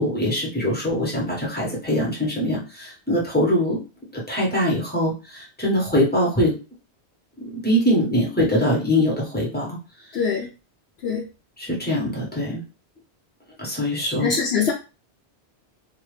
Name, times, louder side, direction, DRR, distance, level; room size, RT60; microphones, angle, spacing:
voice 1, 0.0-3.8 4.1-6.5 7.4-9.8 11.6-12.6 13.6-14.3, equal, 10° left, -4 dB, 1.1 m, -23 dB
voice 2, 10.1-10.5 11.0-11.2 14.2-14.7, left 6 dB, 75° left, -2 dB, 0.9 m, -23 dB
2.8 x 2.4 x 3.2 m, 0.31 s
omnidirectional pair, 1.1 m